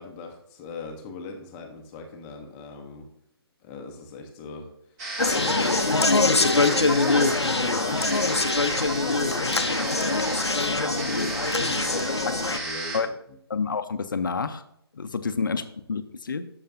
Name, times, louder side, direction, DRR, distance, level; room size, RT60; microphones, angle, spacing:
voice 1, 0.0-3.1 3.6-10.4 10.6-13.2 15.5-15.6, left 3 dB, 15° left, 4 dB, 0.7 m, -40 dB
sound 1, 5.0-13.0, right 2 dB, 15° right, 0.9 m, -34 dB
Conversation, 5.2-12.6, left 3 dB, 85° left, 0.7 m, -23 dB
voice 2, 13.5-14.6 14.9-15.6 15.9-16.5, left 5 dB, 50° left, 10 dB, 0.7 m, -28 dB
11.5 x 6.5 x 2.6 m, 0.74 s
figure-of-eight pair, 145°, 14 cm